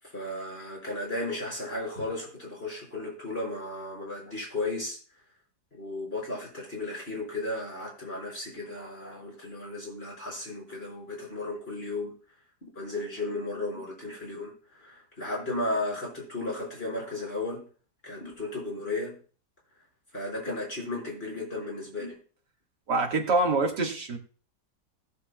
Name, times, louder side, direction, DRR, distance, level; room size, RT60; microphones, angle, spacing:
voice 1, 0.0-5.0 5.7-12.1 12.6-17.6 18.0-19.2 20.1-22.2, left 2 dB, 35° left, -4 dB, 5.5 m, -35 dB
voice 2, 22.9-24.2, right 3 dB, 80° right, 1 dB, 2.4 m, -25 dB
19.5 x 6.9 x 2.3 m, 0.39 s
omnidirectional pair, 1.8 m